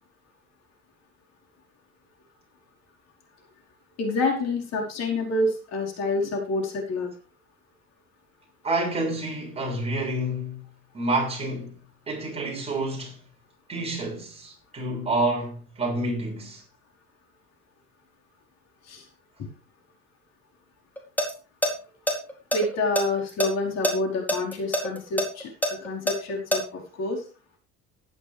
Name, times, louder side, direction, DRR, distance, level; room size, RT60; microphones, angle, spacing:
voice 1, 4.0-7.1 18.9-19.1 22.5-25.5 25.8-27.2, left 2 dB, 55° left, 4.9 m, -27 dB
voice 2, 8.6-10.6 10.9-11.8 12.1-13.2 13.7-16.6, right 2 dB, 20° right, 6.4 m, -28 dB
sound 1, 21.0-21.3 21.6-21.7 22.1-23.5 23.8-23.9 24.3-26.6, left 1 dB, 5° left, 4.3 m, -24 dB
15.5 x 11.5 x 3.5 m
cardioid pair, 135°, 31 cm